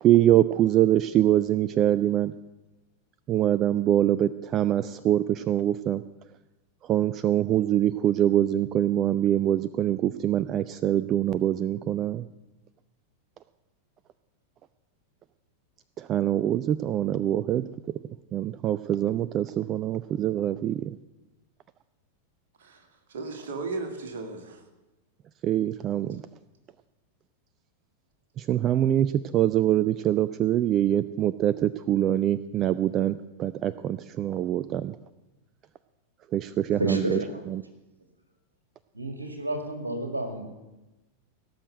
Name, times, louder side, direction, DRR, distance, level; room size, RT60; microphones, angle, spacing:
voice 1, 0.0-2.3 3.3-6.0 6.9-12.2 16.0-17.7 18.3-20.9 25.4-26.2 28.4-34.9 36.3-37.2, right 12 dB, 30° right, 15 dB, 0.3 m, -24 dB
voice 2, 22.6-24.6, right 3 dB, 60° right, 4 dB, 2.0 m, -36 dB
voice 3, 36.7-37.5 38.9-40.4, right 1 dB, 80° right, 6 dB, 1.9 m, -30 dB
17.5 x 6.5 x 7.9 m, 1.0 s
figure-of-eight pair, 90°, 0 cm